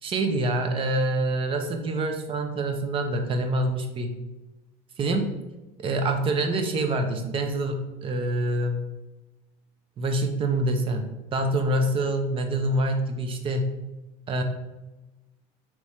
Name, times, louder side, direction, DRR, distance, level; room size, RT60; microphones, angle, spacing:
voice 1, 0.0-4.1 5.0-5.3 5.8-8.8 10.0-13.7 14.3-14.4, right 1 dB, 35° right, 5 dB, 0.6 m, -26 dB
3.5 x 3.0 x 4.2 m, 1.0 s
cardioid pair, 120°, 16 cm